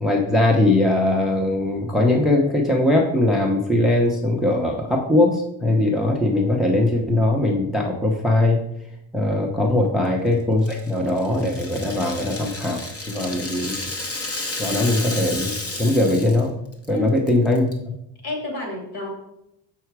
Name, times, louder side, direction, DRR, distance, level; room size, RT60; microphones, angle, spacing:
voice 1, 0.0-8.6 9.1-13.8 14.6-16.5 16.9-18.0, left 2 dB, ahead, 1 dB, 0.6 m, -20 dB
Rattle (instrument), 10.6-16.5 16.7-16.9 17.3-17.7, left 2 dB, 30° left, 0.9 m, -32 dB
voice 2, 18.2-19.1, left 2 dB, 55° left, 1 dB, 2.9 m, -31 dB
6.9 x 5.8 x 4.6 m, 0.80 s
cardioid pair, 155°, 48 cm